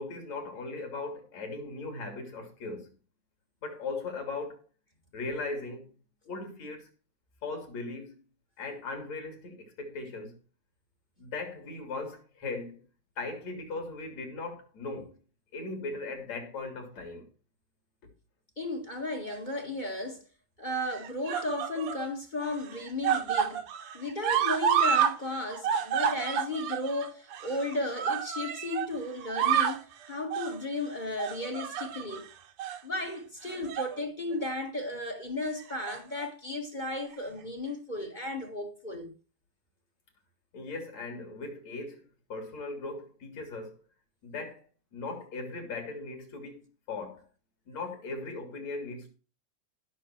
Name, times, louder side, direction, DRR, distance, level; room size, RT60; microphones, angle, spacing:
voice 1, 0.0-2.9 3.6-4.6 5.1-5.9 6.3-6.9 7.4-8.2 8.6-10.3 11.2-12.8 13.2-15.1 15.5-17.3 40.5-42.0 42.3-43.8 44.2-44.6 44.9-47.2 47.7-49.1, left 3 dB, 60° left, 4.7 m, -38 dB
voice 2, 18.6-20.2 20.6-23.6 23.9-32.3 32.8-39.1, left 2 dB, 20° left, 1.4 m, -34 dB
sound 1, 19.3-19.9 20.8-22.1 22.4-25.2 25.4-28.9 29.2-29.9 30.3-30.6 31.2-32.2 32.6-32.8 33.5-34.0 34.3-34.5 35.6-36.3 37.1-37.2, right 8 dB, 65° right, 2.2 m, -30 dB
15.5 x 6.9 x 4.6 m
omnidirectional pair, 3.5 m